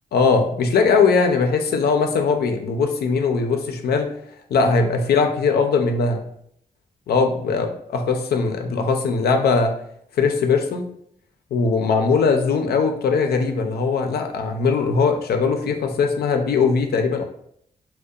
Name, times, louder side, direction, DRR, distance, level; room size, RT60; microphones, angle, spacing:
voice 1, 0.1-4.1 4.5-6.2 7.1-7.7 7.9-9.7 10.2-10.9 11.5-17.2, left 4 dB, 80° left, 4 dB, 0.4 m, -20 dB
2.7 x 2.1 x 2.3 m, 0.69 s
cardioid pair, 65°, 16 cm